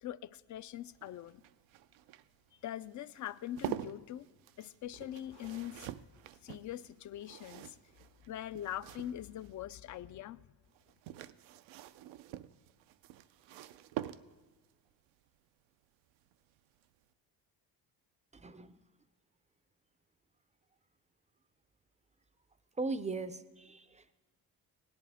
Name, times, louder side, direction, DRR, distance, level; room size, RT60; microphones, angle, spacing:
voice 1, 0.0-1.4 2.6-4.3 4.6-6.0 6.4-7.8 8.3-10.4, left 12 dB, 40° left, 17 dB, 0.4 m, -42 dB
sound 1, 0.8-9.6 10.7-14.6 16.3-16.6 16.8-16.9, right 13 dB, 80° right, 0.6 m, -46 dB
voice 2, 18.3-18.8 22.8-24.1, right 3 dB, 15° right, 13 dB, 0.5 m, -39 dB
17.0 x 10.5 x 3.5 m, 1.3 s
supercardioid pair, 75°, 46 cm